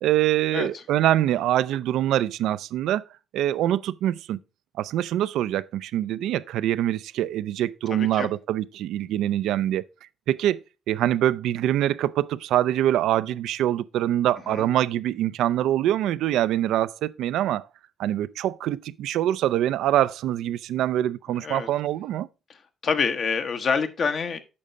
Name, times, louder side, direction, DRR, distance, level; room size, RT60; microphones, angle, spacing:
voice 1, 0.0-3.0 3.3-4.4 4.8-9.9 10.3-17.7 18.0-22.3, right 12 dB, 85° right, 0.3 m, -24 dB
voice 2, 0.5-0.8 7.9-8.3 14.5-14.7 21.4-21.7 22.8-24.4, left 5 dB, 55° left, 1.0 m, -27 dB
8.6 x 5.5 x 3.8 m
cardioid pair, 90°, 0 cm